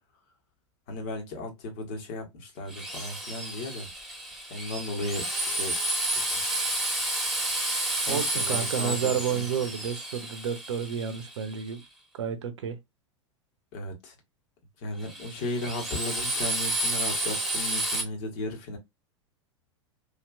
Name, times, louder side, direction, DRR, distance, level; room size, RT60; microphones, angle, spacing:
voice 1, 0.9-3.9 4.5-5.8 6.3-6.4 8.0-9.5 13.7-14.1 14.8-18.8, left 1 dB, 50° left, 1.5 m, -35 dB
Drill, 2.7-11.6 15.0-18.0, right 1 dB, ahead, 1.3 m, -31 dB
voice 2, 8.1-11.8 12.2-12.8, right 8 dB, 65° right, 0.7 m, -30 dB
3.2 x 2.9 x 2.3 m
figure-of-eight pair, 90°, 16 cm